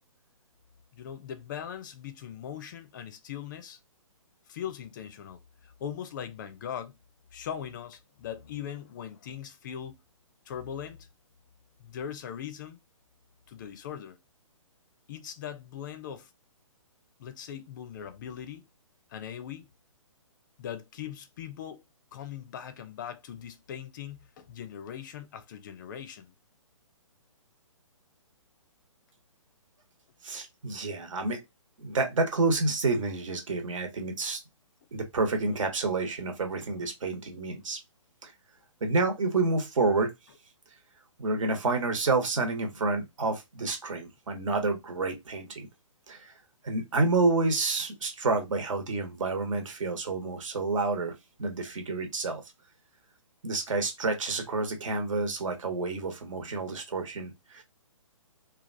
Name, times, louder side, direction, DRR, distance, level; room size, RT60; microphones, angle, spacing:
voice 1, 0.9-3.8 4.5-7.0 7.3-10.0 10.5-11.1 11.8-12.8 13.5-14.2 15.1-16.3 17.2-18.7 19.1-19.7 20.6-21.8 22.1-26.3, left 9 dB, 35° left, 0.5 m, -40 dB
voice 2, 30.2-31.4 31.8-34.4 34.9-37.8 38.2-38.3 38.8-40.1 41.2-45.7 46.1-46.3 46.6-51.1 51.4-52.4 53.4-57.6, right 3 dB, 65° right, 1.1 m, -29 dB
3.2 x 2.3 x 2.6 m
figure-of-eight pair, 135°, 17 cm